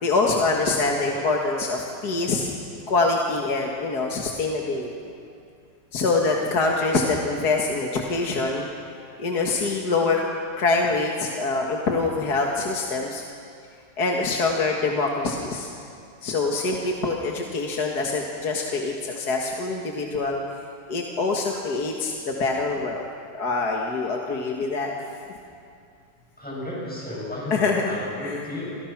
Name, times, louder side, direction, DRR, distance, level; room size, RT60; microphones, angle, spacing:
voice 1, 0.0-2.5 2.9-5.1 5.9-8.7 9.2-10.2 10.6-13.2 14.0-15.7 16.2-20.4 20.9-24.9 27.5-28.4, left 3 dB, 55° left, 0 dB, 2.3 m, -25 dB
voice 2, 26.4-28.7, left 1 dB, 5° left, -5 dB, 7.7 m, -33 dB
30.0 x 26.0 x 6.1 m, 2.4 s
omnidirectional pair, 2.1 m